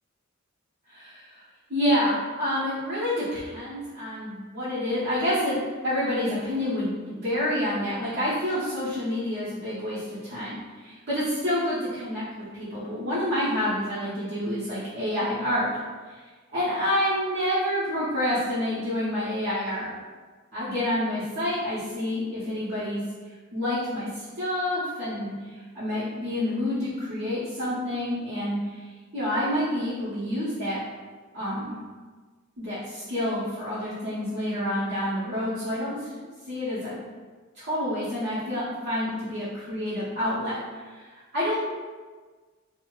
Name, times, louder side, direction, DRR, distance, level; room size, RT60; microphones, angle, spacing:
voice 1, 0.9-1.4 1.7-12.2 12.5-15.7 16.1-16.2 16.5-19.9 20.5-23.0 23.5-28.9 29.1-30.8 31.3-31.7 32.6-36.1 36.5-37.0 37.5-41.1 41.3-41.6, left 1 dB, 55° right, -13 dB, 0.9 m, -28 dB
2.8 x 2.1 x 3.0 m, 1.4 s
head